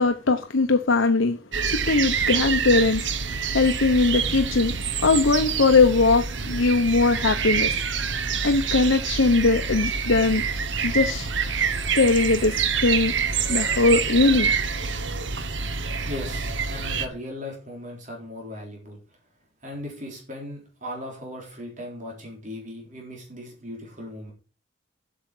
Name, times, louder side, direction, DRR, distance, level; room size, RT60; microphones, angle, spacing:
voice 1, 0.0-3.1 3.5-7.7 8.4-10.4 10.8-11.3 12.0-13.1 13.5-14.5, left 3 dB, 80° left, 0.9 m, -20 dB
sound 1, 1.5-17.1, right 6 dB, 65° right, 1.2 m, -27 dB
voice 2, 16.1-19.0 19.6-24.3, left 1 dB, 40° right, 3.7 m, -37 dB
8.2 x 7.2 x 6.1 m
head